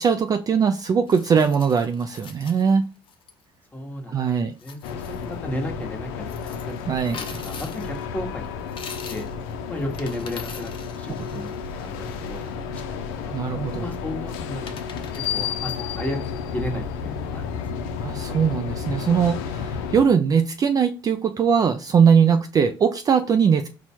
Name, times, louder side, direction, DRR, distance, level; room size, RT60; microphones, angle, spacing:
voice 1, 0.0-2.9 4.1-4.5 6.9-7.4 13.3-13.8 18.0-23.7, right 6 dB, 30° right, 7 dB, 0.3 m, -20 dB
sound 1, 1.1-3.3 4.5-5.3 6.3-8.1 8.7-9.4 9.8-12.5 14.0-14.1 14.7-16.0, left 6 dB, 45° left, 0.7 m, -43 dB
voice 2, 3.7-4.2 4.6-6.7 7.1-8.6 9.1-9.3 9.7-11.5 11.8-13.3 13.8-15.0 15.3-17.9, left 1 dB, 15° left, 2 dB, 1.2 m, -34 dB
sound 2, 4.8-20.0, left 6 dB, 90° left, 0.5 m, -32 dB
4.3 x 2.2 x 4.3 m, 0.33 s
supercardioid pair, 90°, 12 cm